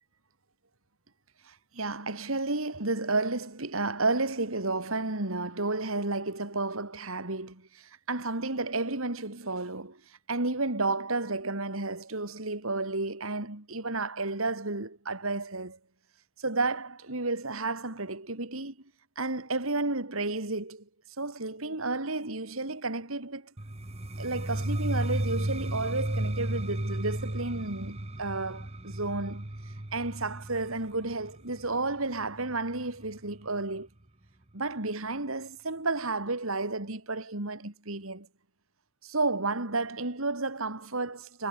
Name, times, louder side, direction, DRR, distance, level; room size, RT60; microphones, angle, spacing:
voice 1, 1.5-7.7 8.1-10.0 10.3-15.8 16.4-18.7 19.2-20.8 21.2-23.5 24.2-29.5 29.9-33.9 34.5-38.3 39.0-41.5, right 3 dB, 70° right, 3.2 m, -32 dB
sound 1, 23.6-33.4, right 1 dB, 30° right, 1.4 m, -34 dB
head